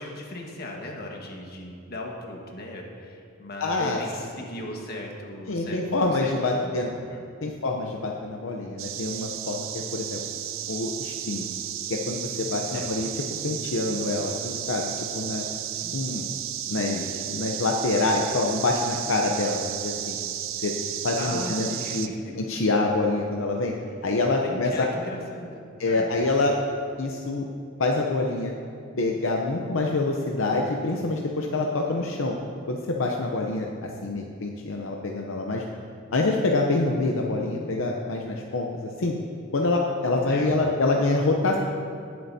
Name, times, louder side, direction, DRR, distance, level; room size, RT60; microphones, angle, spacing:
voice 1, 0.0-6.3 6.8-7.3 12.7-12.9 15.8-16.0 21.2-22.3 24.4-26.1 40.3-40.5, left 1 dB, 50° left, 0 dB, 1.4 m, -37 dB
voice 2, 3.6-4.0 5.5-6.9 7.4-10.2 10.7-11.5 11.9-15.4 15.9-16.3 16.7-20.2 20.6-20.7 21.0-21.7 21.9-22.1 22.4-23.7 24.0-24.9 25.8-26.6 27.0-27.5 27.8-28.5 29.0-32.4 32.7-35.6 36.1-39.1 39.5-41.6, left 2 dB, 75° left, 0 dB, 0.7 m, -26 dB
sound 1, 8.8-22.1, right 11 dB, 75° right, 0.5 m, -33 dB
18.0 x 7.8 x 2.7 m, 2.5 s
head